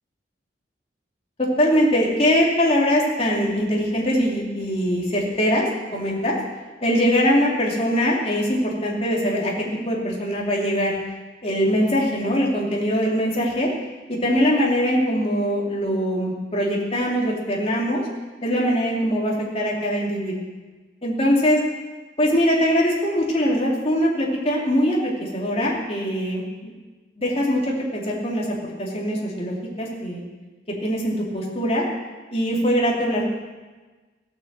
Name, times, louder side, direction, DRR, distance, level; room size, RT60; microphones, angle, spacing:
voice 1, 1.4-5.7 5.9-6.4 6.8-10.9 11.4-13.7 14.1-18.0 18.4-20.4 21.0-21.6 22.2-26.7 27.2-30.2 30.8-31.8 32.3-33.3, equal, 35° left, -3 dB, 3.2 m, -22 dB
16.0 x 8.9 x 7.7 m, 1.3 s
head